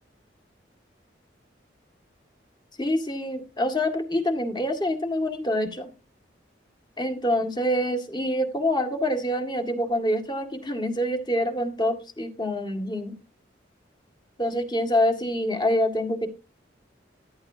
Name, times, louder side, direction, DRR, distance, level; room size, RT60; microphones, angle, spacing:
voice 1, 2.8-5.9 7.0-13.2 14.4-16.3, left 1 dB, 25° left, 4 dB, 1.8 m, -26 dB
14.0 x 12.0 x 2.7 m, 0.30 s
head